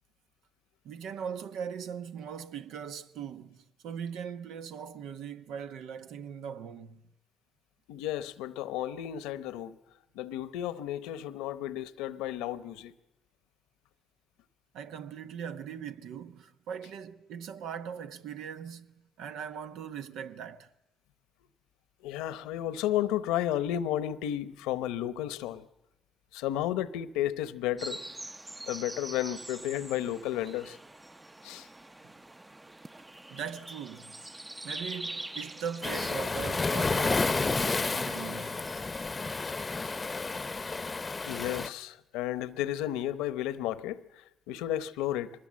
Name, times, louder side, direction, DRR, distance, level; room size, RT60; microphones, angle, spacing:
voice 1, 0.8-7.0 14.7-20.7 32.0-32.1 33.3-34.3 34.6-38.7, right 7 dB, 80° right, 1.0 m, -40 dB
voice 2, 7.9-9.8 10.1-12.9 22.0-25.7 26.3-28.0 28.7-30.8 31.4-31.7 41.3-45.5, left 12 dB, 90° left, 0.9 m, -33 dB
sound 1, 27.8-39.4, right 1 dB, 20° right, 0.7 m, -44 dB
Waves surf, 35.8-41.7, left 3 dB, 30° left, 0.7 m, -31 dB
23.5 x 20.5 x 7.6 m
supercardioid pair, 55°, 0 cm